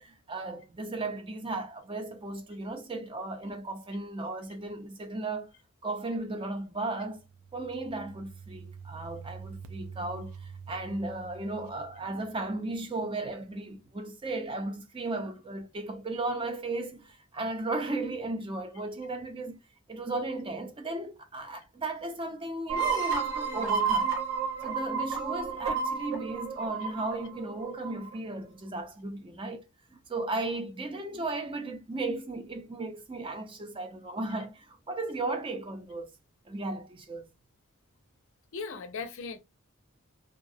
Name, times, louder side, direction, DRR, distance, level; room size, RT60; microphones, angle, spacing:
voice 1, 0.0-5.5 5.8-7.2 7.5-10.3 10.7-19.6 19.9-24.1 24.6-29.6 29.9-36.1 36.5-37.3, right 2 dB, 25° right, 0.4 m, -35 dB
sound 1, 7.0-12.6, right 6 dB, 85° right, 0.4 m, -46 dB
sound 2, 22.7-28.1, right 6 dB, 60° right, 1.0 m, -31 dB
voice 2, 38.5-39.4, left 4 dB, 60° left, 0.5 m, -38 dB
2.3 x 2.0 x 2.6 m
head